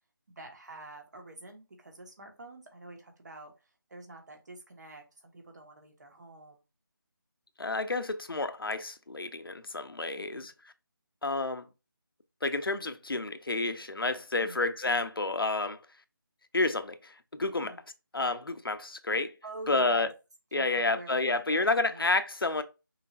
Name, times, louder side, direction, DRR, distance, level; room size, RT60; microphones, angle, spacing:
voice 1, 0.3-3.5 3.9-6.6 10.2-10.5 14.4-14.6 17.6-17.8 19.4-20.1 20.5-22.0, right 1 dB, 50° right, 1.5 m, -47 dB
voice 2, 7.6-10.5 11.2-11.7 12.4-15.8 16.5-17.7 18.1-19.3 19.7-20.1 20.5-22.6, left 3 dB, 90° left, 0.8 m, -30 dB
5.8 x 3.4 x 2.5 m
figure-of-eight pair, 165°, 12 cm